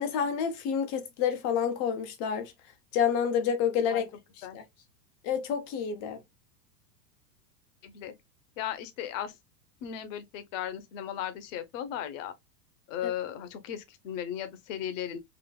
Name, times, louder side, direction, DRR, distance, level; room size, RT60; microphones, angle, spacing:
voice 1, 0.0-2.5 2.9-4.1 4.5-4.6 5.2-6.2, left 7 dB, 25° left, 0.4 m, -28 dB
voice 2, 7.8-8.1 8.6-9.3 9.8-12.3 12.9-15.2, left 10 dB, 50° left, 0.9 m, -36 dB
4.0 x 2.5 x 2.2 m
supercardioid pair, 140°, 49 cm